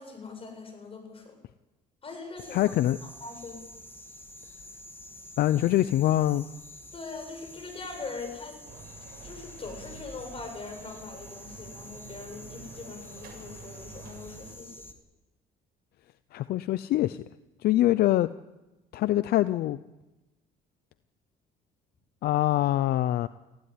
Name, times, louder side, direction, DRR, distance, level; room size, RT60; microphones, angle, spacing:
voice 1, 0.0-1.3 2.0-2.6 3.0-3.6 6.9-8.6 9.2-14.8, left 4 dB, 35° left, 4 dB, 7.7 m, -41 dB
sound 1, 2.4-14.9, left 1 dB, 15° left, 2.4 m, -48 dB
voice 2, 2.5-3.0 5.4-6.5 16.3-17.2 17.6-18.3 18.9-19.8 22.2-23.3, left 14 dB, 70° left, 15 dB, 0.6 m, -24 dB
sound 2, 8.6-14.5, right 5 dB, 65° right, 7.9 m, -48 dB
19.5 x 16.0 x 9.7 m, 1.1 s
cardioid pair, 110°, 17 cm